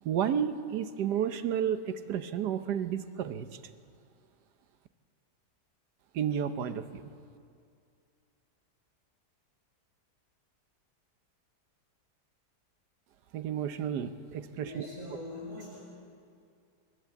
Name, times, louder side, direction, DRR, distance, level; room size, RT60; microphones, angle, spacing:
voice 1, 0.0-3.6 6.1-7.0 13.3-14.9, right 9 dB, 80° right, 10 dB, 1.4 m, -31 dB
voice 2, 14.6-15.8, left 2 dB, 60° right, -5 dB, 5.5 m, -42 dB
27.5 x 11.5 x 8.2 m, 2.4 s
omnidirectional pair, 1.8 m